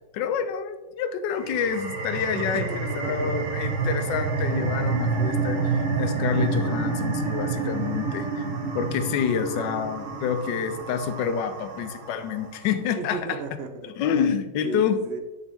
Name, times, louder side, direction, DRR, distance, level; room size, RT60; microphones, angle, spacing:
voice 1, 0.1-2.6 3.0-13.4 14.0-15.0, left 7 dB, 80° left, 10 dB, 1.3 m, -28 dB
sound 1, 1.3-12.5, right 4 dB, 50° right, 1.0 m, -28 dB
voice 2, 2.3-3.3 10.2-10.5 13.0-13.9 14.6-15.2, right 5 dB, 70° right, 7 dB, 0.6 m, -35 dB
10.0 x 3.8 x 3.5 m, 1.1 s
omnidirectional pair, 2.0 m